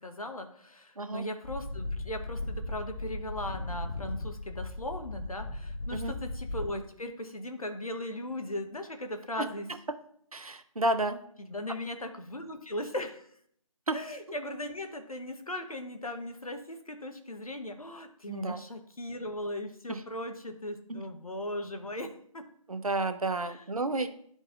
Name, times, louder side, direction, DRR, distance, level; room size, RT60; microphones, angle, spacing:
voice 1, 0.0-9.7 11.4-13.3 13.9-22.5 23.4-23.6, left 1 dB, 90° left, 6 dB, 0.9 m, -38 dB
sound 1, 1.4-6.7, left 2 dB, 60° left, 0.9 m, -37 dB
voice 2, 9.4-9.8 10.3-11.2 13.9-14.0 18.3-18.6 19.9-20.0 20.9-21.0 22.7-24.1, right 2 dB, 90° right, 10 dB, 0.6 m, -31 dB
10.5 x 4.0 x 2.4 m, 0.66 s
figure-of-eight pair, 150°, 18 cm